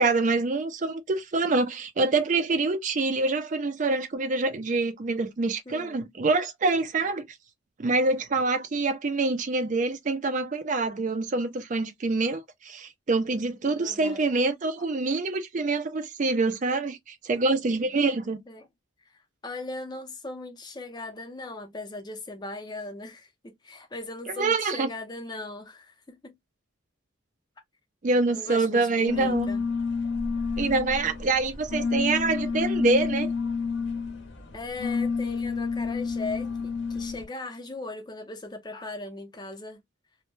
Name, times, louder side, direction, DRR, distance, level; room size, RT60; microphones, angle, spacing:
voice 1, 0.0-7.3 7.8-18.4 24.4-24.9 28.0-29.5 30.6-33.3, right 3 dB, 35° right, 0.4 m, -26 dB
voice 2, 5.7-6.0 13.8-14.2 18.5-18.7 19.1-26.3 28.3-29.7 34.5-39.8, left 2 dB, 20° left, 0.5 m, -39 dB
sound 1, 29.1-37.3, left 5 dB, 55° left, 0.6 m, -29 dB
2.1 x 2.0 x 3.0 m
head